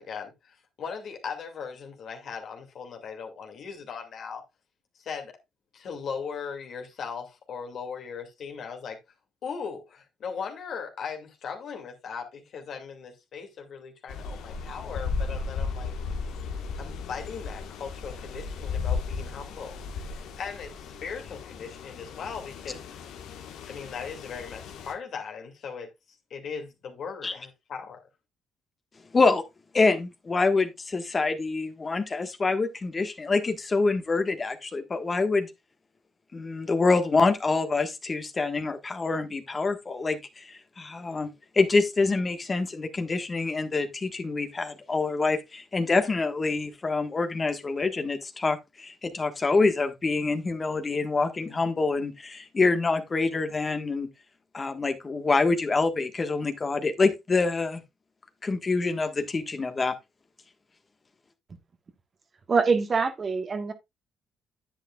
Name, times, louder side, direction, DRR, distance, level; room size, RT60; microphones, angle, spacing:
voice 1, 0.0-4.4 4.9-5.4 5.7-9.0 9.4-15.9 16.8-20.1 20.4-22.8 23.7-25.9 26.3-28.0, left 6 dB, 65° left, 2.4 m, -38 dB
sound 1, 14.1-24.9, left 5 dB, 80° left, 1.4 m, -35 dB
voice 2, 29.1-29.4 29.7-35.5 36.3-41.3 41.5-54.1 54.5-57.8 58.4-59.9, left 3 dB, 35° left, 1.5 m, -26 dB
voice 3, 62.5-63.7, right 4 dB, 40° right, 1.4 m, -24 dB
10.0 x 8.4 x 2.4 m
supercardioid pair, 65°, 0 cm